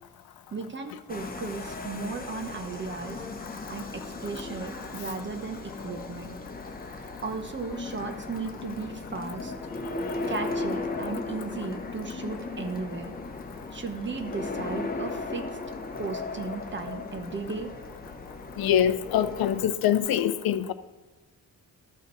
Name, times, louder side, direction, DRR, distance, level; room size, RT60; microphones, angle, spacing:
voice 1, 0.5-3.2 3.7-6.3 7.2-9.5 10.3-13.2 13.7-15.4 16.0-17.7, right 4 dB, 30° right, 5 dB, 0.9 m, -35 dB
sound 1, 1.1-19.6, left 3 dB, 25° left, 1.0 m, -37 dB
voice 2, 18.6-20.7, left 10 dB, 85° left, 12 dB, 0.6 m, -24 dB
13.5 x 5.1 x 3.9 m, 1.3 s
wide cardioid pair, 140°, 36 cm